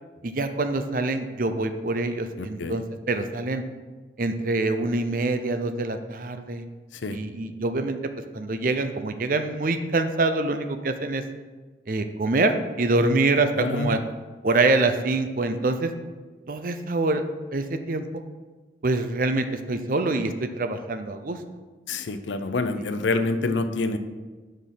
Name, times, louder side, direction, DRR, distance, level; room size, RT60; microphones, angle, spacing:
voice 1, 0.2-3.6 4.2-6.6 7.1-8.0 8.3-11.2 11.9-14.0 14.4-15.9 16.5-17.2 17.5-18.0 18.8-21.4 22.8-22.9, right 2 dB, 50° right, 8 dB, 0.5 m, -25 dB
voice 2, 2.4-2.8 6.9-7.2 13.6-14.0 21.9-24.0, left 3 dB, 85° left, 9 dB, 0.6 m, -27 dB
6.3 x 5.3 x 5.8 m, 1.3 s
head